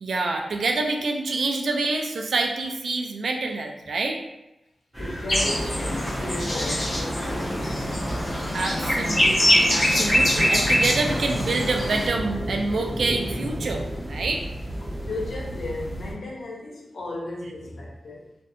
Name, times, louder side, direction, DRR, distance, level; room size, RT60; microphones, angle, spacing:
voice 1, 0.0-4.2 8.5-14.4, right 3 dB, 70° right, 2 dB, 0.3 m, -27 dB
sound 1, 4.9-16.1, equal, 10° right, 0.6 m, -32 dB
voice 2, 5.0-7.8 14.8-18.4, left 2 dB, 80° left, -1 dB, 0.5 m, -35 dB
sound 2, 5.3-12.1, left 1 dB, 40° left, 0.7 m, -23 dB
2.5 x 2.1 x 2.6 m, 0.91 s
wide cardioid pair, 165°, 0 cm